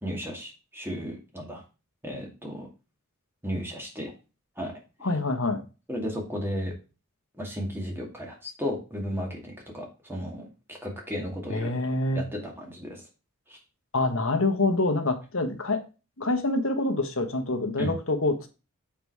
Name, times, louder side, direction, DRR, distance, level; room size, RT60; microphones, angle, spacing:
voice 1, 0.0-1.6 2.0-2.7 3.4-4.1 4.6-4.7 5.9-6.7 7.4-11.8 12.1-13.0 13.5-13.6 17.8-17.9, equal, 10° right, 2.2 m, -34 dB
voice 2, 5.0-5.6 11.5-12.2 13.9-15.8 16.2-18.5, left 2 dB, 65° left, 1.4 m, -26 dB
7.3 x 5.1 x 4.8 m
head